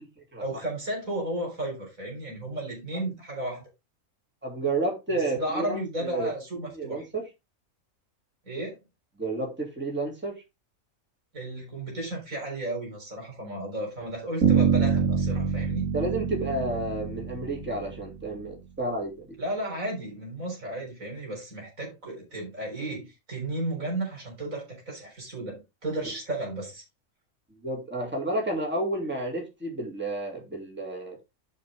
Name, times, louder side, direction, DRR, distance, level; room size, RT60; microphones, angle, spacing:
voice 1, 0.4-3.7 5.1-7.0 8.4-8.8 11.3-15.9 19.4-26.8, right 1 dB, 70° right, 4.4 m, -34 dB
voice 2, 4.4-6.3 6.7-7.2 9.2-10.4 15.9-19.4 27.6-31.2, right 2 dB, 10° right, 2.8 m, -31 dB
Bass guitar, 14.4-18.3, right 6 dB, 90° right, 2.7 m, -26 dB
11.0 x 5.2 x 3.6 m
omnidirectional pair, 1.4 m